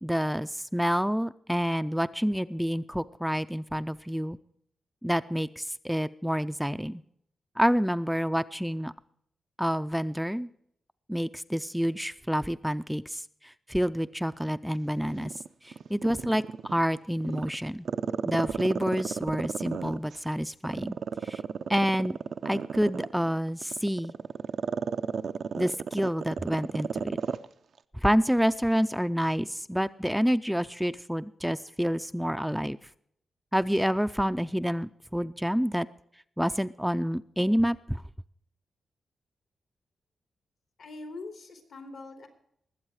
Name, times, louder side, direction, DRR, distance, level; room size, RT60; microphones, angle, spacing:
voice 1, 0.0-4.4 5.0-7.0 7.6-8.9 9.6-10.5 11.1-15.3 15.6-17.9 18.2-21.0 21.2-21.4 21.7-22.2 22.4-24.1 25.6-27.2 28.0-32.8 33.5-35.9 36.4-38.0, equal, ahead, 12 dB, 0.4 m, -28 dB
Growling, 15.0-16.8 17.2-20.2 20.6-27.5 27.8-27.9, right 6 dB, 70° right, 0.5 m, -33 dB
voice 2, 40.8-42.3, left 3 dB, 80° left, 5 dB, 2.9 m, -42 dB
20.0 x 8.0 x 4.8 m, 0.69 s
cardioid pair, 75°, 0 cm